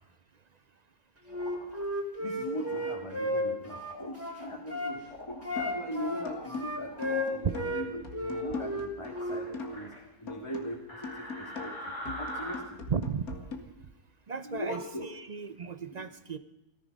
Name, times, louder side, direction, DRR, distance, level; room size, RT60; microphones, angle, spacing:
sound 1, 1.3-1.8 2.5-2.9 3.6-4.1 5.0-5.4 5.9-6.5 6.8-7.3 8.2-8.7 9.1-10.0 10.9-12.6, equal, 50° left, 5.5 m, -43 dB
Wind instrument woodwind instrument, 1.3-5.0 5.4-9.4, left 1 dB, 10° right, 2.7 m, -34 dB
voice 1, 2.2-9.9 10.2-12.8 14.4-15.1, left 1 dB, 20° left, 0 dB, 2.0 m, -39 dB
sound 2, 5.6-5.9 6.2-9.9 10.3-13.6, left 3 dB, 65° left, 2.2 m, -42 dB
voice 2, 12.9-13.2 14.3-16.4, right 6 dB, 55° right, 12 dB, 0.4 m, -34 dB
19.5 x 13.5 x 5.3 m, 0.92 s
omnidirectional pair, 1.6 m